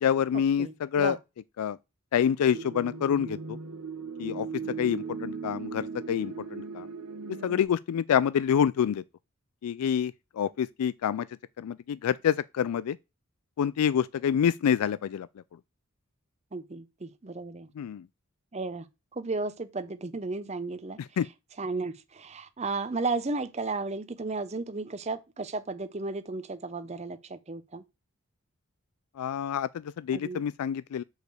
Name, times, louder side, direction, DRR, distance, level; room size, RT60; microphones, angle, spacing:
voice 1, 0.0-1.2 1.6-1.8 2.1-3.6 4.2-4.5 4.8-6.9 7.4-9.0 9.6-11.3 11.6-13.0 13.6-15.3 17.8-18.0 21.0-21.3 29.2-31.0, left 8 dB, 85° left, 0.3 m, -27 dB
voice 2, 0.6-1.2 16.5-17.7 18.5-18.8 19.1-21.0 21.6-27.8 30.1-30.4, right 3 dB, 30° right, 0.6 m, -34 dB
sound 1, 2.5-7.6, right 5 dB, 85° right, 1.2 m, -38 dB
6.4 x 4.9 x 6.7 m
head